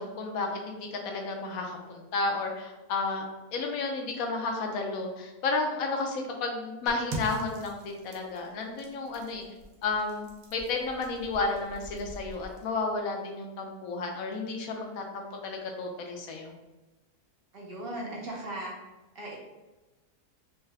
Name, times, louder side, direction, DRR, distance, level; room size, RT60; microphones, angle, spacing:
voice 1, 0.0-3.2 3.5-9.4 9.8-16.5, left 3 dB, 65° left, 2 dB, 1.0 m, -32 dB
sound 1, 6.9-12.7, right 1 dB, 80° right, 1.2 m, -43 dB
voice 2, 17.5-18.7 19.1-19.4, right 1 dB, 55° right, -2 dB, 0.7 m, -37 dB
4.6 x 2.2 x 3.3 m, 1.1 s
omnidirectional pair, 1.7 m